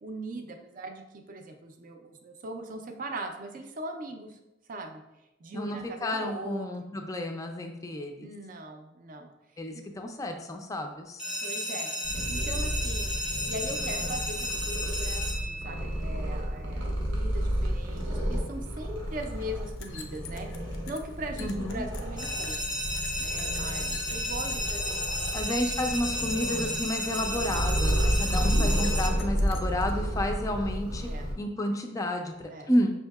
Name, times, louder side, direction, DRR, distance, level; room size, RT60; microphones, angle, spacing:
voice 1, 0.0-4.4 4.7-5.0 5.4-7.0 7.9-9.3 9.7-9.8 11.4-11.9 12.3-20.5 20.9-22.8 23.2-25.4 28.1-28.8 31.0-31.3 32.5-32.7, right 1 dB, 45° right, 5 dB, 0.4 m, -40 dB
voice 2, 5.5-8.3 9.6-11.2 21.4-21.8 25.3-31.1 31.4-32.9, left 1 dB, 15° left, 4 dB, 0.3 m, -31 dB
sound 1, 11.2-16.1 22.2-29.1, equal, 5° right, 0.7 m, -33 dB
Purr, 12.0-31.3, equal, 80° right, 0.9 m, -31 dB
sound 2, 18.7-18.8 19.0-24.8 25.1-25.5 25.8-26.1 26.4-26.7 27.1-29.9, left 6 dB, 90° left, 0.4 m, -48 dB
5.3 x 2.7 x 2.3 m, 0.94 s
head